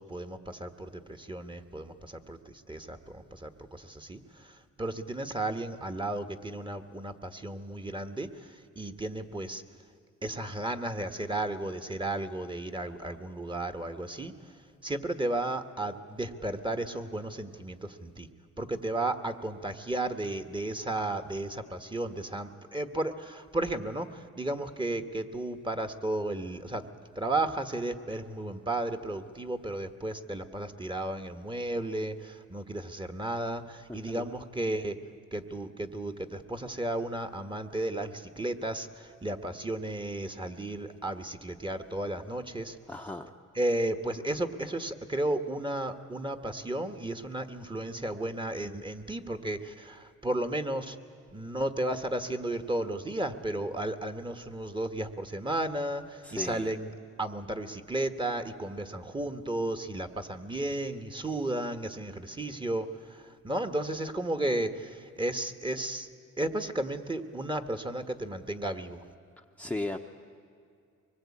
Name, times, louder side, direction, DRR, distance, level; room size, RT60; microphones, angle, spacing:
voice 1, 0.0-9.6 10.2-18.3 18.6-26.8 27.1-35.0 35.3-42.8 43.5-51.0 51.3-56.9 57.2-66.1 66.4-69.0, right 1 dB, 15° right, 8 dB, 1.5 m, -34 dB
voice 2, 33.9-34.3 42.9-43.3 56.2-56.7 69.4-70.0, left 2 dB, 5° left, 4 dB, 0.9 m, -36 dB
24.0 x 21.0 x 8.6 m, 2.4 s
cardioid pair, 90°, 30 cm